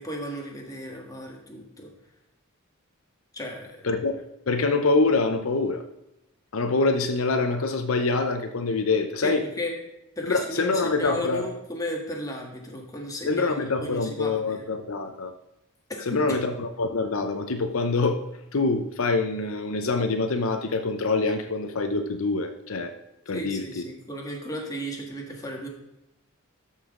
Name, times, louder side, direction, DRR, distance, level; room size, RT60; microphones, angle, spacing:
voice 1, 0.0-1.9 3.3-3.8 9.2-9.7 10.2-14.6 15.9-16.4 23.3-25.7, left 1 dB, 15° left, 0 dB, 1.6 m, -34 dB
voice 2, 4.5-5.8 6.5-9.4 10.2-11.4 13.3-15.3 16.1-18.2 18.5-23.0 23.3-23.8, left 3 dB, 70° left, 6 dB, 0.7 m, -25 dB
13.0 x 5.6 x 3.7 m, 0.87 s
head